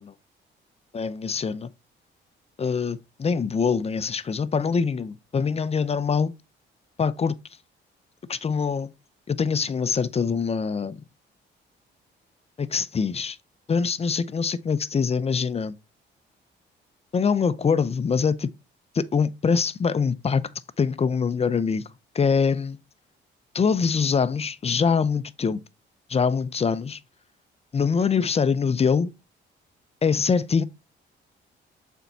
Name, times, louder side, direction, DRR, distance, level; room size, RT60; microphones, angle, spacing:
voice 1, 0.9-1.7 2.6-6.3 7.0-7.4 8.3-8.9 9.3-11.0 12.6-13.4 13.7-15.7 17.1-18.5 18.9-20.4 20.8-21.8 22.1-22.8 23.5-25.6 26.1-27.0 27.7-29.1 30.0-30.6, left 5 dB, 30° left, 0.6 m, -24 dB
6.9 x 4.5 x 4.1 m
cardioid pair, 90°, 20 cm